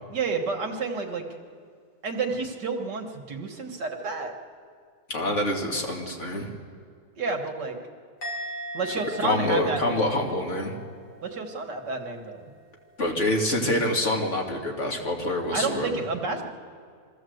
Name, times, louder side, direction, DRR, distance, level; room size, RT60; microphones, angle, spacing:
voice 1, 0.1-1.3 2.0-4.3 7.2-7.8 8.7-10.0 11.2-12.5 15.5-16.5, right 4 dB, 90° right, 4 dB, 2.2 m, -30 dB
voice 2, 5.1-6.5 8.9-10.7 13.0-16.0, left 1 dB, 45° left, 1 dB, 2.4 m, -26 dB
Musical instrument, 8.2-11.6 11.9-12.3, equal, 80° left, 3.7 m, -39 dB
23.0 x 14.5 x 7.9 m, 2.1 s
omnidirectional pair, 1.8 m